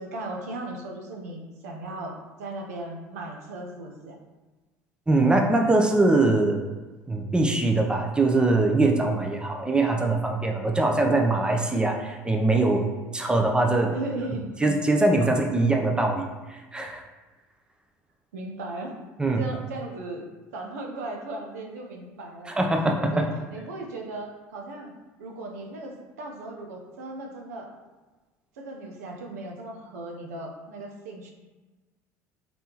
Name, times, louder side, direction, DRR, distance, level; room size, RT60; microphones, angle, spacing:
voice 1, 0.0-4.2 13.9-14.6 18.3-18.9 19.4-20.2 20.5-22.5 23.0-24.9 25.2-27.7 28.6-31.3, right 2 dB, 85° right, 1 dB, 0.7 m, -37 dB
voice 2, 5.1-6.6 7.1-13.9 14.6-17.0 19.2-19.4 22.6-23.3, right 2 dB, 10° right, 2 dB, 0.7 m, -22 dB
4.1 x 3.4 x 2.9 m, 1.2 s
hypercardioid pair, 75°, 8 cm